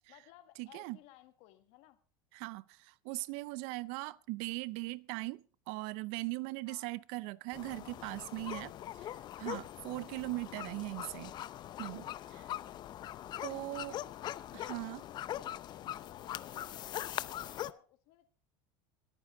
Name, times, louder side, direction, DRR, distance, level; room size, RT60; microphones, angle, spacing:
voice 1, 0.1-2.0 6.7-7.0 8.4-9.1 9.9-10.7 12.3-13.1 13.5-14.4 16.0-18.3, left 15 dB, 65° left, 1.8 m, -60 dB
voice 2, 0.6-1.0 2.3-8.7 9.4-11.3 11.8-12.4 13.4-13.9 14.5-15.1, right 22 dB, 65° right, 0.6 m, -40 dB
sound 1, 7.5-17.7, left 12 dB, 40° left, 0.6 m, -42 dB
22.0 x 9.1 x 3.8 m
supercardioid pair, 115°, 11 cm